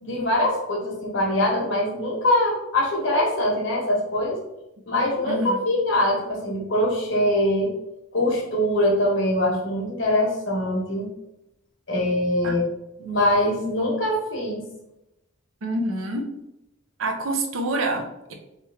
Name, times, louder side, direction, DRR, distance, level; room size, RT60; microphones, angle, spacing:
voice 1, 0.0-4.4 4.9-7.7 8.1-11.1 11.9-12.6 13.0-14.7, left 1 dB, 65° left, -1 dB, 1.2 m, -23 dB
voice 2, 5.2-5.6 12.4-12.6 15.6-16.2 17.0-18.3, right 1 dB, 85° right, 4 dB, 0.7 m, -27 dB
3.6 x 3.1 x 3.4 m, 0.88 s
head